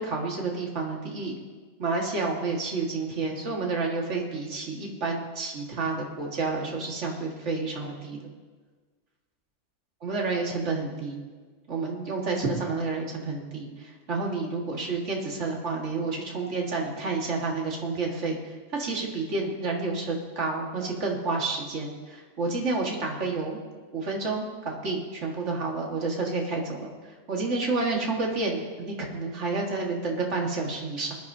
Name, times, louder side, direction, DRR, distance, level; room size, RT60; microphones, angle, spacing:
voice 1, 0.0-1.3 1.8-8.2 10.0-11.2 11.7-23.6 23.9-31.2, right 3 dB, 65° right, -1 dB, 2.1 m, -30 dB
21.0 x 11.5 x 2.8 m, 1.4 s
omnidirectional pair, 1.3 m